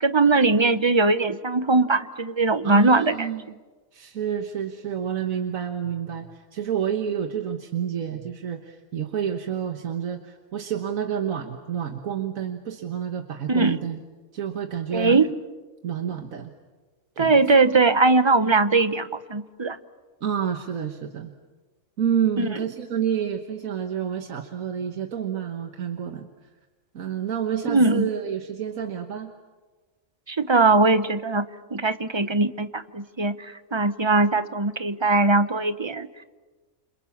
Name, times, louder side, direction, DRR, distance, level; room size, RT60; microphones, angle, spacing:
voice 1, 0.0-3.3 13.5-13.8 14.9-15.3 17.2-19.8 22.4-22.5 27.7-28.1 30.3-31.5 31.7-36.1, right 3 dB, 25° right, 12 dB, 0.8 m, -20 dB
voice 2, 2.6-3.6 3.9-14.0 14.3-15.2 15.8-16.5 17.2-17.3 20.2-21.3 22.0-26.3 26.9-29.3, right 8 dB, 85° right, 5 dB, 1.7 m, -29 dB
29.0 x 26.5 x 7.3 m, 1.3 s
omnidirectional pair, 1.4 m